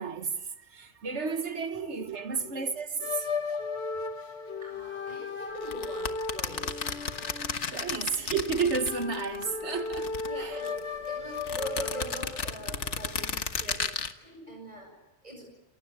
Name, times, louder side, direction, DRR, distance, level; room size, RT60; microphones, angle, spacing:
voice 1, 0.0-3.3 7.7-10.7, right 5 dB, 75° right, 9 dB, 1.8 m, -32 dB
sound 1, 3.0-12.6, left 4 dB, 65° left, 1.8 m, -36 dB
voice 2, 4.6-6.8 7.9-8.2 10.2-10.7 11.1-13.9 14.2-14.9 15.2-15.5, right 1 dB, 35° right, 2 dB, 7.3 m, -42 dB
sound 2, 5.6-9.4 9.7-10.8 11.4-14.1, left 5 dB, 90° left, 1.7 m, -34 dB
28.5 x 22.5 x 9.0 m, 0.98 s
omnidirectional pair, 1.2 m